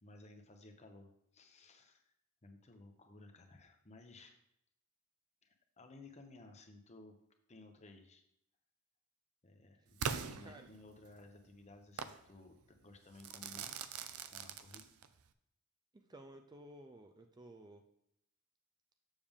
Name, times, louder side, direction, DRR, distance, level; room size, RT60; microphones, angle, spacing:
voice 1, 0.0-2.1 2.4-4.4 5.4-7.2 7.5-8.2 9.4-12.6 12.8-13.8 14.3-14.9, left 2 dB, 30° left, 5 dB, 0.9 m, -57 dB
Crackle / Fireworks, 10.0-11.2 12.0-12.2 13.2-15.2, right 6 dB, 80° right, 0.5 m, -42 dB
voice 2, 15.9-17.8, right 1 dB, 20° right, 5 dB, 0.4 m, -55 dB
7.2 x 6.7 x 3.5 m, 0.76 s
head